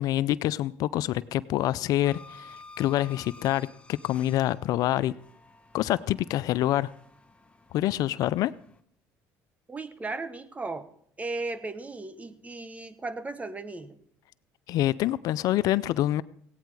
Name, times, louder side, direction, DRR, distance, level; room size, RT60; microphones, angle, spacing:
voice 1, 0.0-5.1 5.7-6.9 7.7-8.5 14.7-16.2, left 14 dB, 65° left, 18 dB, 0.4 m, -26 dB
sound 1, 2.0-8.8, left 3 dB, 15° left, 1.0 m, -52 dB
voice 2, 9.7-10.9 11.2-14.0, right 3 dB, 20° right, 12 dB, 1.1 m, -36 dB
16.5 x 9.0 x 4.7 m, 0.65 s
supercardioid pair, 85°, 7 cm